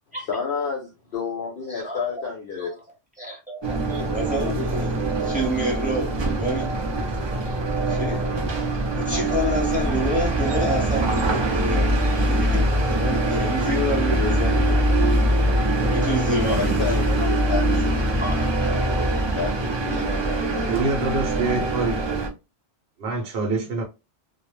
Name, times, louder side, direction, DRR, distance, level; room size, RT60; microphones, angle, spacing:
voice 1, 0.3-2.7 16.5-17.2 17.5-18.0 19.3-21.0, left 5 dB, 60° left, 0.7 m, -30 dB
voice 2, 1.7-2.1 2.6-2.7 3.2-6.7 7.9-8.4 9.0-12.0 12.2-14.9 15.9-17.1 17.6-18.9, equal, 10° right, 0.8 m, -29 dB
sound 1, 3.6-22.3, right 1 dB, 40° right, 0.4 m, -23 dB
voice 3, 20.7-22.3 23.0-23.8, right 3 dB, 65° right, 0.9 m, -26 dB
2.2 x 2.0 x 3.0 m
omnidirectional pair, 1.2 m